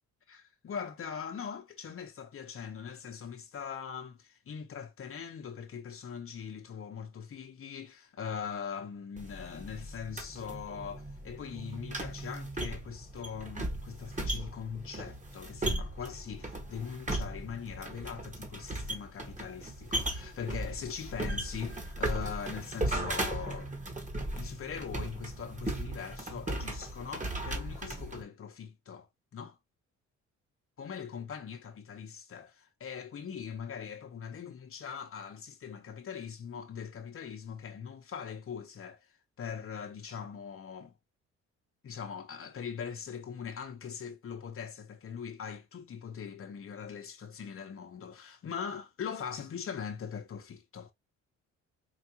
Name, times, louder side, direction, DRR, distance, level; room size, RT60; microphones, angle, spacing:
voice 1, 0.6-23.7 24.3-29.1 29.3-29.6 30.8-39.1 39.4-40.9 41.8-50.9, left 7 dB, 45° left, 0.9 m, -41 dB
sound 1, 9.2-28.2, right 1 dB, 25° right, 1.4 m, -37 dB
4.7 x 2.6 x 2.8 m
cardioid pair, 90°, 30 cm